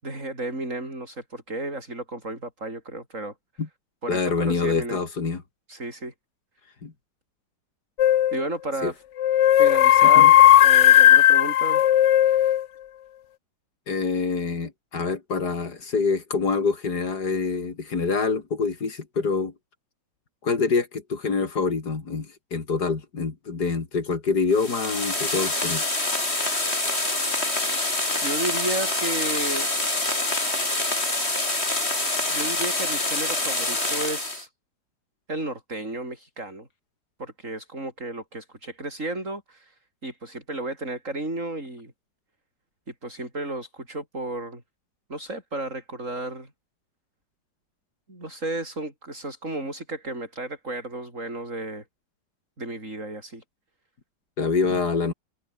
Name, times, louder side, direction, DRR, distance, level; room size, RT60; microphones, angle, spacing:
voice 1, 0.0-3.3 4.0-5.0 5.7-6.1 8.3-9.0 9.5-11.8 28.2-29.7 32.3-34.5 35.3-36.7 37.2-41.9 42.9-44.6 45.1-46.5 48.1-51.8 52.6-53.4, right 2 dB, 40° right, 8.4 m, -33 dB
voice 2, 4.1-5.4 6.8-6.9 8.8-8.9 10.0-10.3 13.9-19.5 20.4-25.8 54.4-55.1, left 4 dB, 60° left, 3.5 m, -26 dB
sound 1, 8.0-8.4 9.2-12.6, left 11 dB, 75° left, 0.6 m, -15 dB
sound 2, 24.5-34.4, left 2 dB, 35° left, 5.1 m, -26 dB
omnidirectional pair, 2.0 m